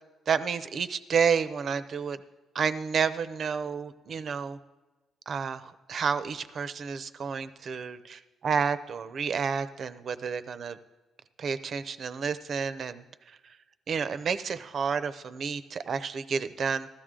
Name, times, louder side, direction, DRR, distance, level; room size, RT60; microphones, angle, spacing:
voice 1, 0.3-2.2 2.5-4.6 5.3-10.8 11.4-13.6 13.9-16.9, right 6 dB, 55° right, 12 dB, 0.6 m, -30 dB
15.0 x 13.0 x 3.7 m, 1.2 s
cardioid pair, 90°, 0 cm